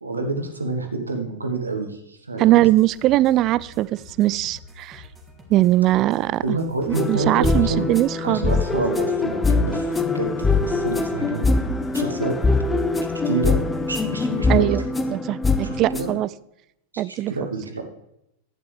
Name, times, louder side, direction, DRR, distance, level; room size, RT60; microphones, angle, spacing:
voice 1, 0.0-2.6 6.4-7.9 8.2-11.5 11.9-12.3 13.2-13.6 13.9-14.9 15.6-16.1 16.9-17.8, right 3 dB, 80° right, 5 dB, 1.3 m, -28 dB
sound 1, 2.4-14.7, left 2 dB, 15° right, 1.8 m, -46 dB
voice 2, 2.4-5.0 5.5-6.6 6.9-8.5 14.5-14.8 15.1-16.3 17.0-17.3, right 15 dB, 35° right, 20 dB, 0.3 m, -20 dB
sound 2, 6.9-16.2, left 3 dB, 10° left, 0.6 m, -23 dB
11.5 x 9.0 x 3.3 m, 0.82 s
figure-of-eight pair, 90°, 0 cm